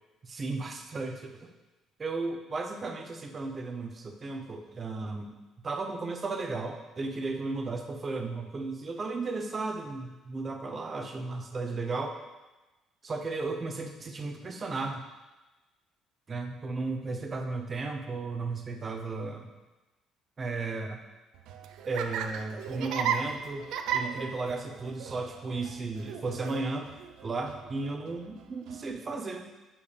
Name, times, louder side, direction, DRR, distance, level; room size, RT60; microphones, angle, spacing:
voice 1, 0.2-1.5 2.0-5.4 5.6-12.1 13.0-15.0 16.3-19.5 20.4-21.0 21.9-23.7 23.9-26.9 27.2-29.5, right 3 dB, 20° right, 4 dB, 0.7 m, -34 dB
Laughter, 21.3-28.9, right 7 dB, 70° right, 0.5 m, -36 dB
9.5 x 7.0 x 3.4 m, 1.1 s
cardioid pair, 175°, 0 cm